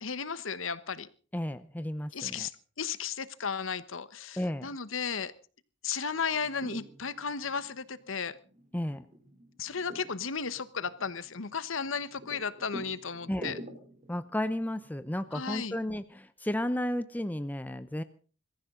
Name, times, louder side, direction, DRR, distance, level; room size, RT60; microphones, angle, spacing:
voice 1, 0.0-1.1 2.1-2.5 2.8-5.3 5.8-8.4 9.6-13.6 15.3-15.8, left 6 dB, 75° left, 15 dB, 1.2 m, -34 dB
voice 2, 1.3-2.5 4.4-4.7 8.7-9.0 13.3-13.6 14.1-18.0, left 1 dB, 10° left, 12 dB, 0.7 m, -33 dB
sound 1, 6.1-15.9, right 1 dB, 40° right, 3.3 m, -49 dB
22.5 x 14.5 x 3.8 m, 0.39 s
head